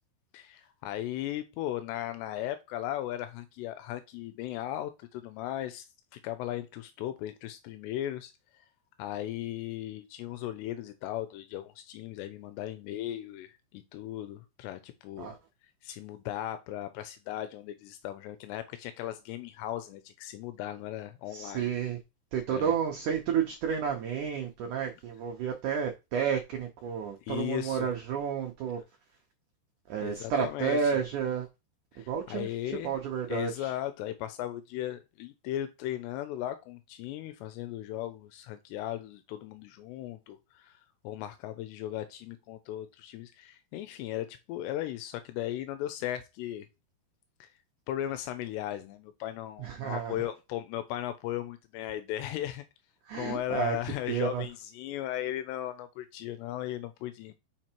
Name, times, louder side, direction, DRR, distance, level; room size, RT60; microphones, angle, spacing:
voice 1, 0.3-5.9 6.1-8.7 9.0-15.3 15.8-21.7 22.5-22.7 27.2-27.9 30.0-31.0 31.9-33.0 33.3-46.7 47.4-47.5 47.9-52.6 53.1-57.3, left 13 dB, 85° left, 2.8 m, -37 dB
voice 2, 21.3-22.0 22.3-28.8 29.9-31.5 32.1-32.5 32.8-33.7 49.6-50.1 53.1-53.8 54.1-54.4, right 7 dB, 80° right, 1.8 m, -31 dB
5.8 x 4.6 x 4.5 m
omnidirectional pair, 4.9 m